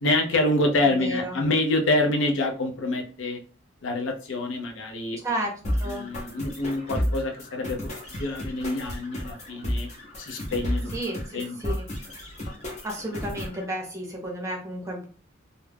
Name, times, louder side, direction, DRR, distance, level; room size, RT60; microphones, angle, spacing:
voice 1, 0.0-3.4 3.8-5.2 5.8-7.8 8.2-9.9 10.2-10.9 11.3-11.6, left 2 dB, 75° left, 2 dB, 0.5 m, -26 dB
voice 2, 0.8-1.4 5.2-5.5 5.8-6.1 10.9-11.9 12.8-15.0, right 1 dB, 15° right, 0 dB, 0.6 m, -32 dB
sound 1, 5.6-13.6, equal, 35° left, 0.7 m, -32 dB
2.3 x 2.0 x 3.3 m, 0.40 s
head